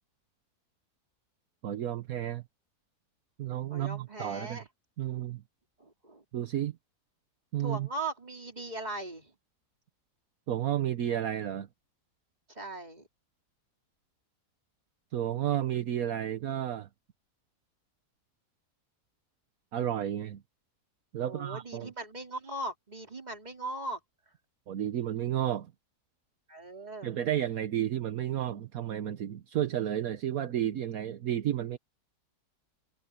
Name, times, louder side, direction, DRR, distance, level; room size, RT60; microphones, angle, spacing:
voice 1, 1.6-2.4 3.4-4.6 5.0-5.4 6.3-6.8 7.5-7.9 10.5-11.7 15.1-16.9 19.7-20.4 21.1-21.9 24.7-25.7 27.0-31.8, right 11 dB, 65° right, 1.3 m, -32 dB
voice 2, 3.7-4.7 5.8-6.2 7.6-9.3 12.5-13.1 21.2-24.0 26.5-27.2, right 2 dB, 25° right, 3.4 m, -39 dB
omnidirectional pair, 1.7 m